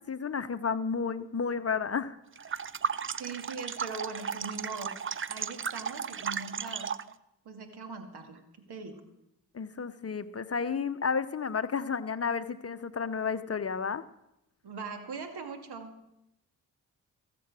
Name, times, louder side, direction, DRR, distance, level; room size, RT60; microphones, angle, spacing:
voice 1, 0.0-2.2 9.5-14.0, left 5 dB, 35° left, 12 dB, 0.8 m, -32 dB
sound 1, 2.4-7.1, right 6 dB, 30° right, 0.6 m, -35 dB
voice 2, 3.2-6.9 7.4-9.0 14.6-16.0, right 4 dB, 60° right, 6 dB, 2.4 m, -41 dB
22.0 x 7.7 x 6.2 m, 0.84 s
hypercardioid pair, 40°, 43 cm